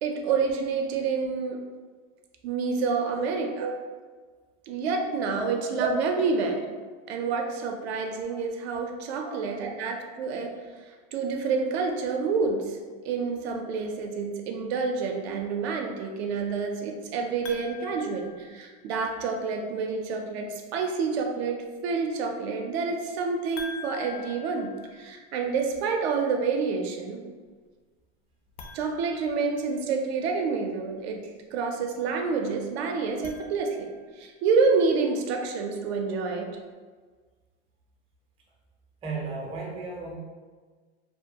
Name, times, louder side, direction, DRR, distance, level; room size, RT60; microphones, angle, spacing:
voice 1, 0.0-1.6 2.4-3.7 4.7-6.6 7.1-10.6 11.1-12.8 13.0-27.2 28.7-33.9 34.2-36.5, right 4 dB, 70° right, 3 dB, 0.5 m, -28 dB
sound 1, 17.4-19.1 23.6-25.6 28.5-30.1 33.0-34.2, left 4 dB, 60° left, 0.5 m, -45 dB
voice 2, 39.0-40.2, right 3 dB, 20° right, -2 dB, 0.5 m, -34 dB
2.4 x 2.2 x 2.7 m, 1.5 s
supercardioid pair, 130°, 33 cm